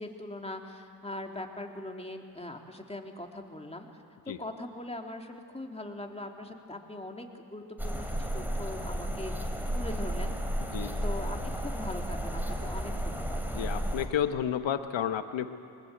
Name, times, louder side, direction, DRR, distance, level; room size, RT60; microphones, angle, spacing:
voice 1, 0.0-3.9 4.2-9.3 9.7-10.3 10.8-13.4, left 1 dB, 10° left, 2 dB, 2.8 m, -41 dB
sound 1, 7.8-14.1, equal, 5° right, 3.5 m, -33 dB
voice 2, 10.7-11.0 13.5-15.6, left 9 dB, 65° left, 9 dB, 1.4 m, -31 dB
20.5 x 20.5 x 8.1 m, 2.5 s
supercardioid pair, 55°, 48 cm